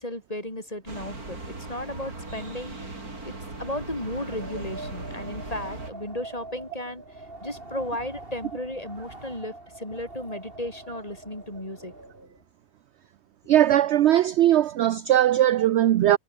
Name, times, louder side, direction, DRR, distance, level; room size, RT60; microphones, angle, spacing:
voice 1, 0.0-2.8 3.2-3.3 3.6-7.0 7.4-11.9, left 1 dB, 25° left, 6.5 m, -34 dB
sound 1, 0.9-5.9, right 2 dB, 85° right, 5.6 m, -38 dB
Wind, 4.0-12.4, right 2 dB, 40° right, 4.8 m, -44 dB
voice 2, 13.5-16.2, right 12 dB, 65° right, 0.7 m, -19 dB
omnidirectional pair, 1.5 m